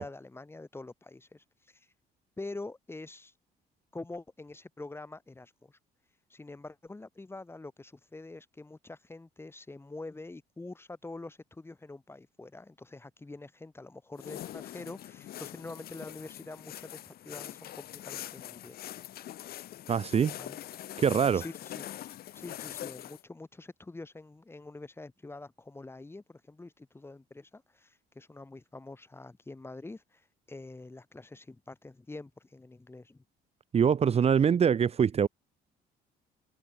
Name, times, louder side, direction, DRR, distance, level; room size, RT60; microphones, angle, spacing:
voice 1, 0.0-1.9 2.4-3.3 3.9-5.8 6.3-18.8 20.4-20.6 21.3-21.9 22.3-33.2, left 2 dB, 15° left, 3.3 m, -45 dB
sound 1, 14.2-23.2, left 13 dB, 65° left, 2.4 m, -43 dB
voice 2, 19.9-20.4 21.0-21.4 33.7-35.3, right 7 dB, 35° right, 1.3 m, -24 dB
cardioid pair, 110°, 17 cm